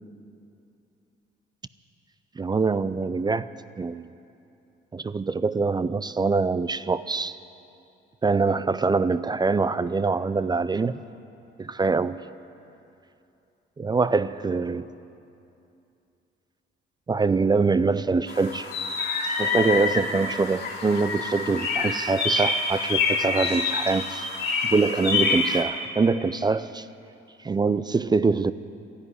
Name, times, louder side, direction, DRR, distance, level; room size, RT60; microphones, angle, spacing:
voice 1, 2.4-3.5 3.8-4.1 4.9-7.4 8.2-11.0 11.6-12.2 13.8-14.9 17.1-18.7 19.4-24.3 24.6-26.9 27.4-28.5, right 4 dB, 20° right, 0.4 m, -24 dB
sound 1, 18.3-25.6, left 4 dB, 55° left, 2.5 m, -27 dB
13.0 x 11.0 x 9.8 m
cardioid pair, 90°, 20 cm